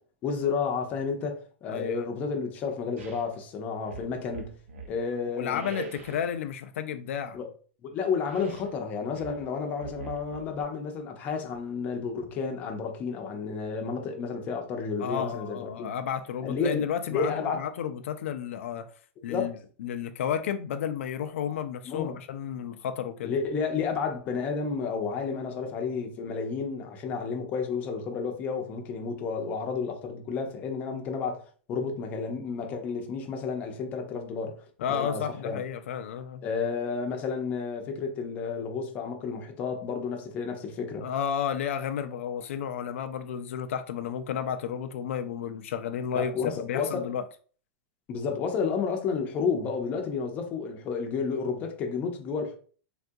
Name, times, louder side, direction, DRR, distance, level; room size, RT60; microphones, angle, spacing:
voice 1, 0.2-4.5 4.9-5.6 7.3-7.5 7.8-15.9 16.4-17.7 19.3-19.5 21.8-22.2 23.2-34.6 34.9-35.6 36.4-41.1 46.1-47.1 48.1-52.6, left 5 dB, 25° left, 0.5 m, -31 dB
voice 2, 1.7-2.0 5.3-7.4 15.0-18.9 19.2-23.3 34.8-36.4 41.0-47.2, left 8 dB, 80° left, 0.3 m, -32 dB
sound 1, 3.0-3.3 3.8-5.0 5.5-6.4 8.2-8.8 9.1-10.6, right 5 dB, 85° right, 0.7 m, -43 dB
3.6 x 2.3 x 2.6 m
supercardioid pair, 165°, 7 cm